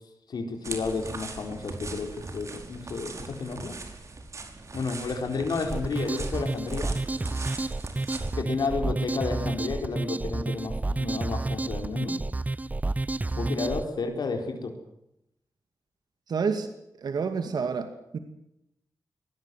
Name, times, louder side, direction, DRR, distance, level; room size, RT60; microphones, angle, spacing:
voice 1, 0.3-3.8 4.7-6.9 8.3-12.2 13.4-14.7, left 4 dB, 85° left, 4 dB, 4.4 m, -31 dB
sound 1, 0.6-8.4, right 3 dB, 45° right, 4.9 m, -40 dB
sound 2, 5.7-13.8, right 2 dB, 20° right, 0.8 m, -30 dB
voice 2, 16.3-16.7 17.0-17.9 18.1-18.2, right 5 dB, 80° right, 8 dB, 2.4 m, -28 dB
24.0 x 19.0 x 7.8 m, 0.81 s
wide cardioid pair, 100°, 7 cm